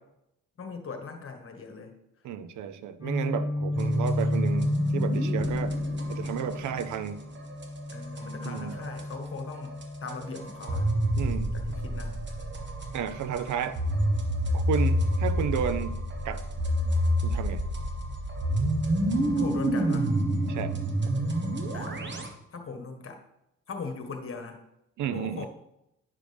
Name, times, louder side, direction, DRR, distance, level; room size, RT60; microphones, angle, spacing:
voice 1, 0.6-1.9 7.9-10.9 11.5-12.2 19.3-20.1 21.7-22.0 22.5-23.2 23.7-24.6 25.1-25.5, left 4 dB, 45° left, 5 dB, 1.5 m, -39 dB
voice 2, 2.2-5.8 6.1-7.2 8.4-8.8 11.2-11.5 12.9-13.8 14.5-16.4 17.2-17.6 20.5-20.7 25.0-25.5, right 8 dB, 75° right, 13 dB, 0.6 m, -32 dB
Guitar, 3.0-10.8, left 2 dB, 10° right, 2.6 m, -31 dB
sound 1, 3.7-9.2 9.5-22.3, equal, 35° right, 1.3 m, -29 dB
9.5 x 6.3 x 3.4 m, 0.82 s
cardioid pair, 90°, 30 cm